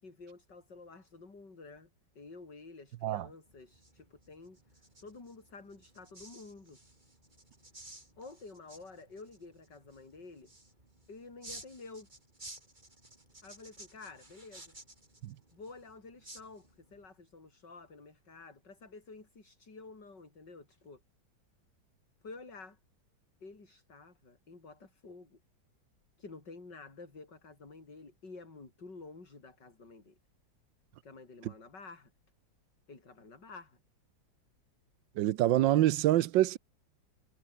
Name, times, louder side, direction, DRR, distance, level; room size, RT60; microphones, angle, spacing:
voice 1, 0.0-1.9 2.2-4.6 5.0-6.8 8.2-10.5 11.1-12.1 13.4-14.7 15.5-21.0 22.2-22.8 23.4-25.4 26.2-30.2 31.0-32.1 32.9-33.8, left 3 dB, 60° left, 5.3 m, -50 dB
sound 1, 3.5-17.0, right 1 dB, 25° right, 4.6 m, -55 dB
voice 2, 35.2-36.6, right 14 dB, 75° right, 1.4 m, -26 dB
omnidirectional pair, 2.1 m